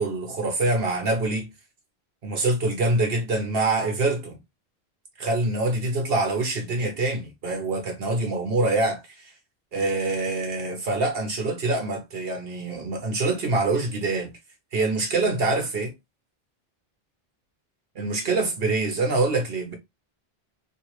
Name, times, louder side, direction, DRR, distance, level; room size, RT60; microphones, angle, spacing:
voice 1, 0.0-1.5 2.2-4.4 5.2-9.3 9.7-14.3 14.7-15.9 17.9-19.7, right 2 dB, 65° right, 1.1 m, -25 dB
2.9 x 2.8 x 3.0 m
omnidirectional pair, 1.1 m